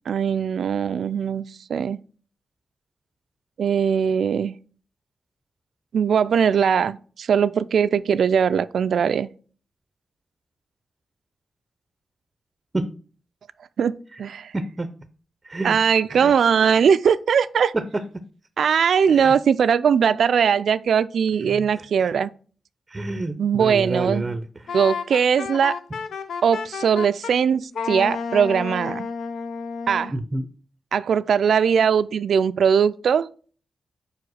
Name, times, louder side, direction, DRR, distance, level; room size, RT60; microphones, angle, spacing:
voice 1, 0.1-2.0 3.6-4.5 5.9-9.3 13.8-14.5 15.6-17.7 18.6-22.3 23.4-24.4 24.7-25.8 26.4-29.1 29.9-30.1 30.9-33.3, right 7 dB, 75° right, 0.4 m, -20 dB
voice 2, 14.5-14.9 15.4-15.8 16.1-16.3 17.7-18.0 19.1-19.3 21.5-21.8 22.9-24.4 30.1-30.5, right 2 dB, 20° right, 0.6 m, -28 dB
Wind instrument woodwind instrument, 24.7-27.3 27.7-30.1, left 5 dB, 90° left, 0.7 m, -31 dB
5.0 x 4.8 x 6.3 m
wide cardioid pair, 155°, 0 cm